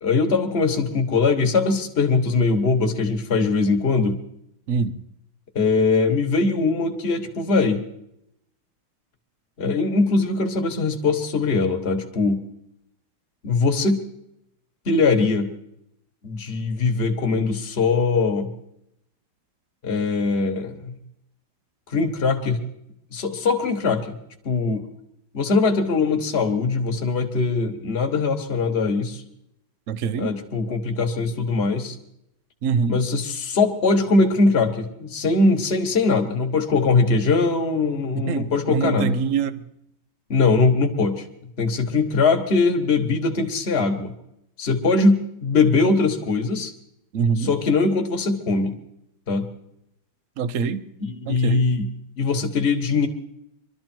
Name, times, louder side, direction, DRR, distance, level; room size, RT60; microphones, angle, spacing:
voice 1, 0.0-4.2 5.5-7.8 9.6-12.4 13.4-14.0 14.8-15.5 16.2-18.5 19.8-21.0 21.9-22.6 23.1-24.2 24.4-24.8 25.3-29.2 30.1-32.0 32.9-39.2 40.3-41.2 41.6-44.1 44.6-46.7 47.4-48.8 49.3-49.5 51.0-53.1, left 3 dB, 35° left, 4 dB, 1.5 m, -21 dB
voice 2, 4.7-5.0 29.9-30.3 32.6-33.0 38.2-39.6 47.1-47.5 50.4-50.8 51.3-51.7, right 6 dB, 65° right, 14 dB, 0.8 m, -24 dB
23.0 x 12.5 x 4.5 m, 0.79 s
omnidirectional pair, 2.3 m